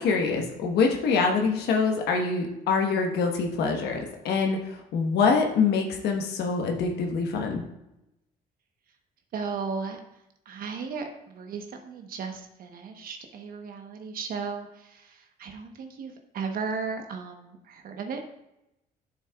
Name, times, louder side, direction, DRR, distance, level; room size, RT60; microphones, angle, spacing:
voice 1, 0.0-4.6 4.9-7.6, left 4 dB, 75° left, 2 dB, 1.2 m, -25 dB
voice 2, 9.3-10.0 10.5-18.2, right 5 dB, 60° right, 5 dB, 1.1 m, -35 dB
9.3 x 7.3 x 2.4 m, 0.87 s
cardioid pair, 110°, 17 cm